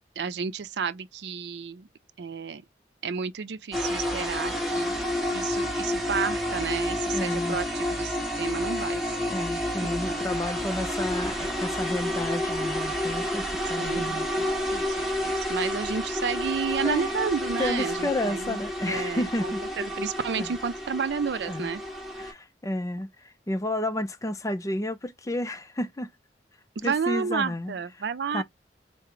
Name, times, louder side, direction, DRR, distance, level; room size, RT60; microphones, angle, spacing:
voice 1, 0.2-1.9 2.2-2.6 3.0-5.0 5.3-9.4 9.8-10.2 13.8-18.6 18.9-21.8 26.8-28.4, right 6 dB, 75° right, 0.4 m, -31 dB
sound 1, 3.7-22.3, left 1 dB, ahead, 0.9 m, -30 dB
voice 2, 7.1-7.6 9.3-14.3 16.8-17.1 17.6-19.6 20.4-20.5 21.5-21.7 22.2-26.1 26.8-27.7 28.3-28.4, left 1 dB, 20° left, 0.5 m, -31 dB
4.8 x 2.1 x 3.0 m
head